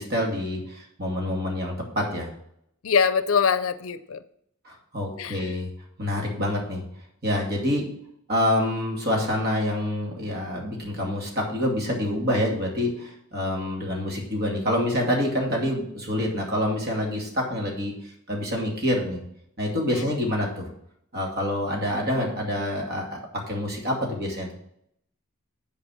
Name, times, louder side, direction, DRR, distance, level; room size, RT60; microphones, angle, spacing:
voice 1, 0.0-2.3 4.6-5.7 6.0-6.8 7.2-7.9 8.3-17.9 18.3-19.2 19.6-20.7 21.1-24.5, left 1 dB, 45° right, -1 dB, 2.5 m, -27 dB
voice 2, 2.8-4.2 5.2-5.6 19.9-20.1, left 6 dB, 65° left, 13 dB, 0.6 m, -24 dB
9.0 x 5.0 x 6.4 m, 0.71 s
head